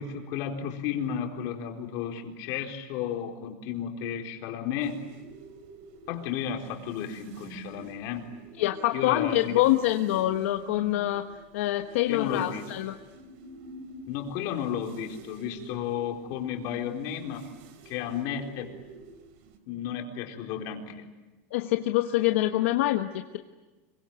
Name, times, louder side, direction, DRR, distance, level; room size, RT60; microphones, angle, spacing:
voice 1, 0.0-5.0 6.1-8.3 8.9-9.6 12.1-13.0 14.1-17.5 17.9-18.7 19.7-21.1, left 8 dB, 55° left, 3 dB, 4.1 m, -33 dB
sound 1, 4.8-19.6, right 3 dB, 65° right, 3.5 m, -48 dB
voice 2, 8.6-11.2 11.5-12.9 21.5-23.4, left 15 dB, 80° left, 5 dB, 1.3 m, -25 dB
26.0 x 23.5 x 9.1 m, 1.2 s
supercardioid pair, 140°, 7 cm